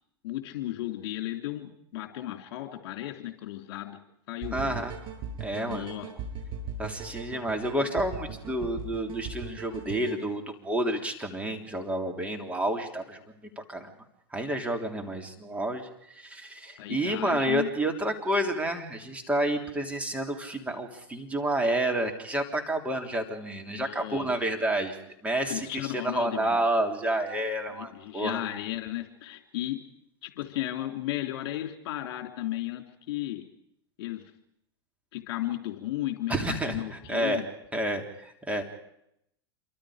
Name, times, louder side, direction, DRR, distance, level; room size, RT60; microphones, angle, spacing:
voice 1, 0.2-4.0 4.3-4.8 5.5-6.1 16.8-17.7 23.7-24.3 25.5-26.6 27.7-29.8 30.2-33.4 34.0-34.2 35.1-37.5, left 14 dB, 60° left, 5 dB, 3.3 m, -35 dB
sound 1, 4.4-10.2, right 4 dB, 35° right, 7.0 m, -39 dB
voice 2, 4.5-4.9 5.4-5.9 6.8-13.2 13.7-13.9 14.3-25.0 25.2-28.4 36.3-36.8 37.1-37.4 37.7-38.6, right 1 dB, 10° right, 3 dB, 3.3 m, -29 dB
27.0 x 25.0 x 5.1 m, 0.77 s
hypercardioid pair, 115°, 14 cm